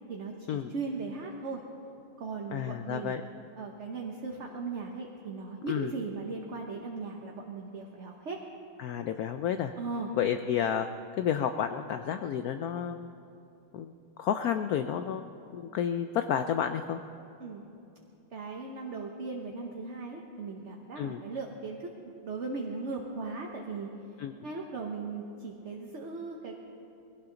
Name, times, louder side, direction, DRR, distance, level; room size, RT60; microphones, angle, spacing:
voice 1, 0.1-1.6 2.2-3.2 3.6-8.4 9.8-10.1 17.4-17.6 18.3-23.9 24.4-26.6, right 4 dB, 45° right, 1 dB, 1.0 m, -38 dB
voice 2, 2.5-3.2 5.7-5.9 8.8-9.7 10.1-10.9 11.2-13.1 13.7-13.9 14.2-15.3 15.5-17.0 21.0-21.2 24.2-24.3, left 9 dB, 85° left, 8 dB, 0.8 m, -30 dB
21.5 x 17.0 x 3.9 m, 2.7 s
omnidirectional pair, 2.2 m